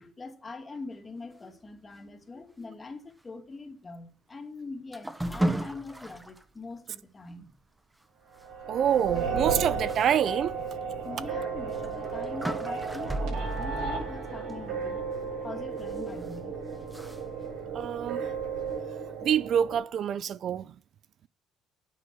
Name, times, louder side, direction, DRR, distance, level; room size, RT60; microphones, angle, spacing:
voice 1, 0.0-7.5 11.0-16.6, left 3 dB, 25° left, 2.4 m, -43 dB
sound 1, 4.9-6.4 6.9-7.0 7.4-7.5 9.1-9.3 9.9-10.1 10.6-10.7 11.7-14.9 15.8-16.4 16.9-17.2, right 1 dB, 10° right, 1.1 m, -34 dB
sound 2, 8.4-19.8, right 5 dB, 85° right, 6.6 m, -34 dB
voice 2, 8.7-10.5 17.7-18.2 19.2-20.6, right 9 dB, 55° right, 0.4 m, -26 dB
9.7 x 8.1 x 7.8 m
cardioid pair, 110°, 0 cm